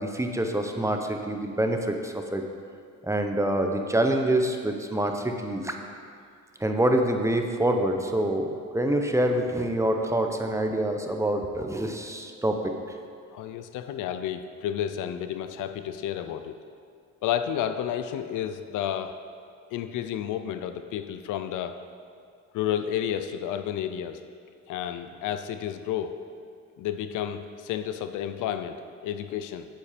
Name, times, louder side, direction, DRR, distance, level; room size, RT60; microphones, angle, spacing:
voice 1, 0.0-2.4 3.0-5.7 6.6-12.7, right 1 dB, 10° right, 4 dB, 0.9 m, -26 dB
voice 2, 13.3-16.5 17.2-19.1 19.7-21.8 22.5-24.2 24.7-26.2 26.8-29.7, left 10 dB, 90° left, 9 dB, 0.6 m, -31 dB
8.7 x 8.4 x 5.1 m, 2.2 s
cardioid pair, 90°, 30 cm